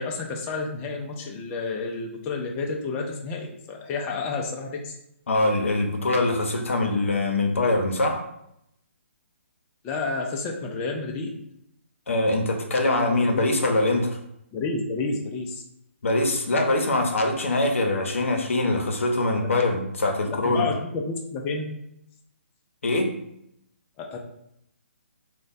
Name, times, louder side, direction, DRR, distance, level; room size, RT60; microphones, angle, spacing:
voice 1, 0.0-5.0 9.8-11.4 13.0-13.5 14.5-15.6 20.2-21.7 24.0-24.2, left 3 dB, 20° left, 0 dB, 0.3 m, -30 dB
voice 2, 5.3-8.2 12.1-14.2 16.0-20.6 22.8-23.1, left 2 dB, 75° left, 3 dB, 0.6 m, -23 dB
2.5 x 2.1 x 3.9 m, 0.78 s
figure-of-eight pair, 140°, 7 cm